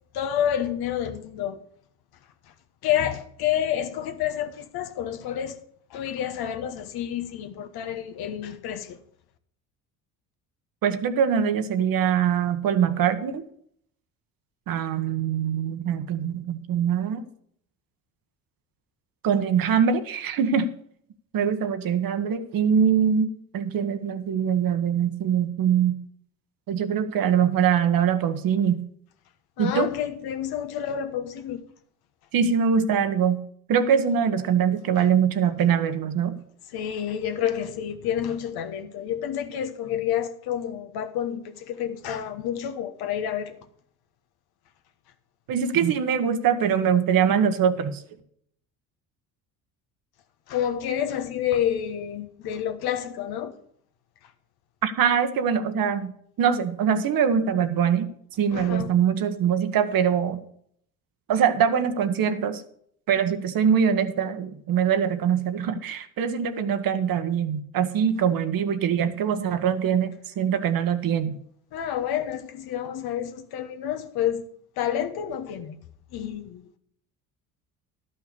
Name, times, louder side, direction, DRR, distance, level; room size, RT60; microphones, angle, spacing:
voice 1, 0.1-1.6 2.8-5.6 5.9-9.0 29.6-31.6 35.0-35.1 36.7-43.6 50.5-53.5 58.5-58.9 71.7-74.4 74.8-75.7 76.1-76.8, left 10 dB, 60° left, 1.2 m, -29 dB
voice 2, 10.8-13.4 14.7-17.3 19.2-20.7 21.3-26.0 26.7-28.8 29.6-29.9 32.3-33.4 33.7-36.4 45.5-48.0 54.8-56.1 56.4-60.4 61.3-62.6 63.1-71.4, right 8 dB, 55° right, 1.3 m, -23 dB
12.0 x 5.7 x 6.7 m
hypercardioid pair, 70°, 42 cm